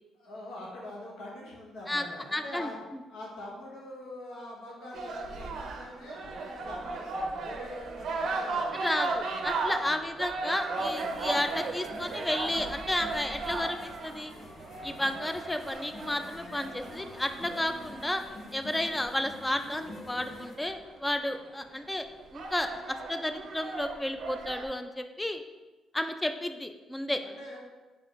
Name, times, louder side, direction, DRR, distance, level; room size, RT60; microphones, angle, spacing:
voice 1, 0.1-2.8 3.1-8.8 9.8-10.1 27.2-27.6, left 1 dB, 85° left, -3 dB, 0.9 m, -44 dB
voice 2, 2.3-2.7 8.8-14.3 14.8-18.2 18.5-22.1 22.3-25.4 25.9-27.2, left 1 dB, 10° left, 8 dB, 0.3 m, -32 dB
sound 1, 4.9-19.2 20.7-20.8 21.2-21.6 22.2-24.7, right 3 dB, 65° right, 0.5 m, -36 dB
finnish carnival, 10.8-20.6, left 1 dB, 45° left, 0.7 m, -46 dB
3.9 x 3.3 x 3.0 m, 1.2 s
cardioid pair, 90°, 0 cm